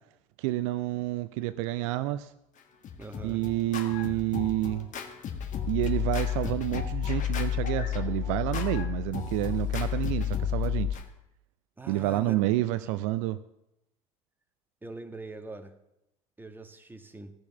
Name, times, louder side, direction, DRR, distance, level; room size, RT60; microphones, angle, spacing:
voice 1, 0.4-2.3 3.2-4.9 5.7-11.0 11.9-13.4, right 16 dB, 60° right, 13 dB, 0.5 m, -29 dB
Scratching (performance technique), 2.6-11.0, left 5 dB, 45° left, 1.5 m, -39 dB
voice 2, 3.0-3.4 11.8-12.4 14.8-15.7 16.4-17.3, right 2 dB, 10° right, 6 dB, 1.5 m, -43 dB
sound 1, 5.3-10.9, left 11 dB, 65° left, 1.7 m, -31 dB
15.5 x 7.0 x 7.0 m, 0.85 s
figure-of-eight pair, 60°, 18 cm